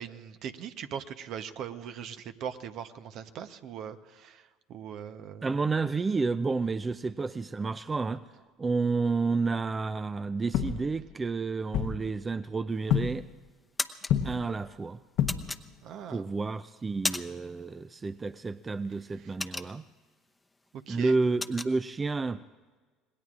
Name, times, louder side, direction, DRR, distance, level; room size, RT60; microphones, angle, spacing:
voice 1, 0.0-5.5 15.8-16.3 20.9-21.1, right 8 dB, 60° right, 10 dB, 0.9 m, -40 dB
voice 2, 5.4-8.2 8.6-13.3 14.2-15.0 16.1-19.8 20.9-22.4, right 4 dB, 25° right, 14 dB, 0.4 m, -30 dB
sound 1, 10.5-11.3 11.7-12.4 12.9-13.4 14.0-14.7 15.2-15.8 17.0-17.1 19.1-19.2, left 9 dB, 65° left, 0.8 m, -30 dB
sound 2, 12.7-13.2 13.5-14.1 15.3-16.1 16.6-17.5 17.8-18.1 18.4-20.1 20.5-20.7 20.9-21.7, left 2 dB, 15° left, 0.8 m, -34 dB
26.5 x 20.0 x 2.5 m, 1.4 s
hypercardioid pair, 75°, 0 cm